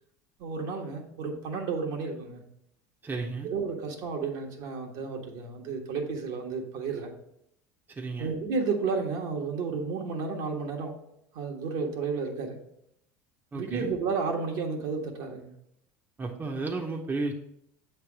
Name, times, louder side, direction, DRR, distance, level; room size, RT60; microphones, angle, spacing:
voice 1, 0.4-2.4 3.4-7.1 8.2-11.0 11.3-12.6 13.5-15.5, right 4 dB, 65° right, 1 dB, 1.4 m, -32 dB
voice 2, 3.0-3.5 7.9-8.3 13.5-13.9 16.2-17.3, right 3 dB, 20° right, 1 dB, 1.0 m, -33 dB
7.5 x 3.3 x 6.1 m, 0.77 s
hypercardioid pair, 85°, 8 cm